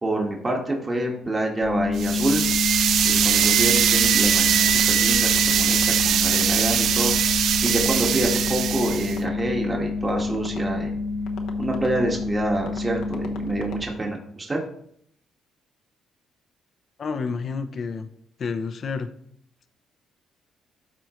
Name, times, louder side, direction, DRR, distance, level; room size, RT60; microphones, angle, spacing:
voice 1, 0.0-2.4 3.0-7.1 7.6-10.9 11.6-14.6, right 1 dB, 25° right, 1 dB, 1.7 m, -27 dB
sound 1, 1.6-13.9, left 4 dB, 85° left, 1.0 m, -28 dB
sound 2, 2.0-9.2, right 9 dB, 70° right, 0.3 m, -21 dB
voice 2, 17.0-18.1 18.4-19.1, left 5 dB, 50° left, 9 dB, 0.7 m, -29 dB
13.0 x 4.4 x 3.2 m, 0.68 s
cardioid pair, 90°, 0 cm